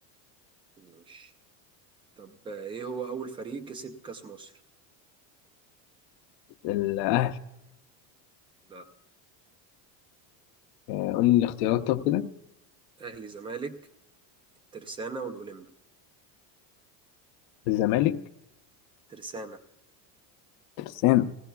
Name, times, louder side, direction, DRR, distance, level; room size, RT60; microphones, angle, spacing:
voice 1, 0.8-1.3 2.2-4.6 8.7-8.9 13.0-13.8 14.7-15.7 19.1-19.6, right 5 dB, 10° right, 0.4 m, -38 dB
voice 2, 6.6-7.4 10.9-12.3 17.7-18.2 20.8-21.3, left 14 dB, 65° left, 0.8 m, -24 dB
20.0 x 16.5 x 2.3 m
cardioid pair, 165°, 49 cm